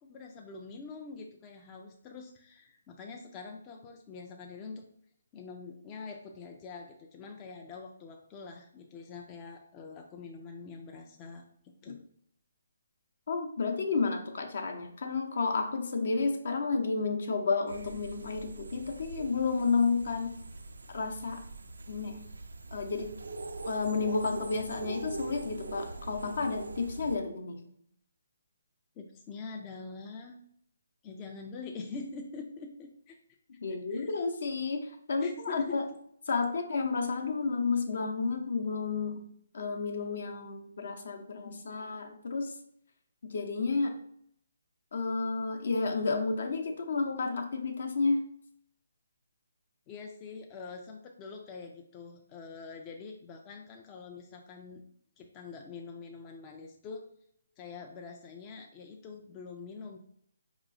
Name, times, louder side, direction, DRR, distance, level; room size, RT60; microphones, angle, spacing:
voice 1, 0.0-4.8 5.3-11.4 11.8-12.0 29.0-30.4 31.0-33.2 33.9-34.1 35.2-35.8 49.9-54.8 55.2-57.1 57.6-60.0, left 4 dB, 20° left, 1 dB, 0.4 m, -45 dB
voice 2, 13.3-20.4 20.9-21.4 21.9-22.2 22.7-23.1 23.6-27.6 33.6-35.8 36.3-39.2 39.5-42.5 43.2-44.0 44.9-48.2, left 4 dB, 60° left, 5 dB, 0.7 m, -31 dB
sound 1, 17.7-27.2, right 2 dB, 80° right, 0.4 m, -42 dB
4.6 x 2.9 x 2.6 m, 0.68 s
hypercardioid pair, 150°, 0 cm